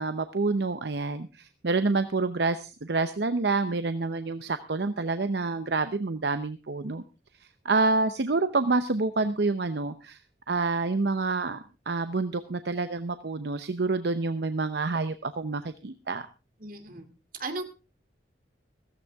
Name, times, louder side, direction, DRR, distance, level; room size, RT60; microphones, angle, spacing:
voice 1, 0.0-7.0 7.4-10.2 10.5-16.3, right 3 dB, 70° right, 10 dB, 0.7 m, -28 dB
voice 2, 16.6-17.1 17.4-17.6, right 2 dB, 50° right, 6 dB, 2.4 m, -35 dB
15.5 x 14.5 x 3.5 m, 0.31 s
head